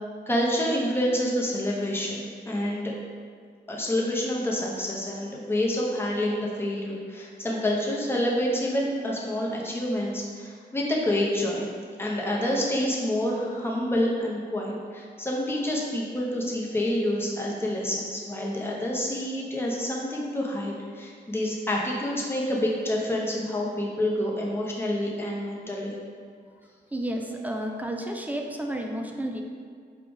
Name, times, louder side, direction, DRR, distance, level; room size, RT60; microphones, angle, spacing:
voice 1, 0.3-2.9 3.7-11.7 12.0-25.9, left 1 dB, 15° left, -3 dB, 0.8 m, -28 dB
voice 2, 26.9-29.4, right 1 dB, 10° right, 2 dB, 0.4 m, -31 dB
4.8 x 2.4 x 3.9 m, 2.1 s
cardioid pair, 95°, 18 cm